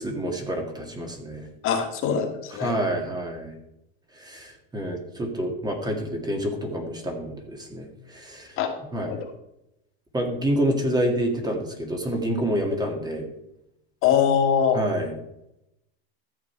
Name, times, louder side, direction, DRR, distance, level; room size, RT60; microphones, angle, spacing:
voice 1, 0.0-1.5 2.6-3.5 4.1-8.6 8.9-9.1 10.1-13.3 14.7-15.1, right 1 dB, 10° right, 3 dB, 1.9 m, -28 dB
voice 2, 1.6-2.7 8.6-8.7 9.1-9.2 14.0-14.8, left 8 dB, 40° left, 4 dB, 1.9 m, -22 dB
14.0 x 7.7 x 4.5 m, 0.84 s
supercardioid pair, 140°, 32 cm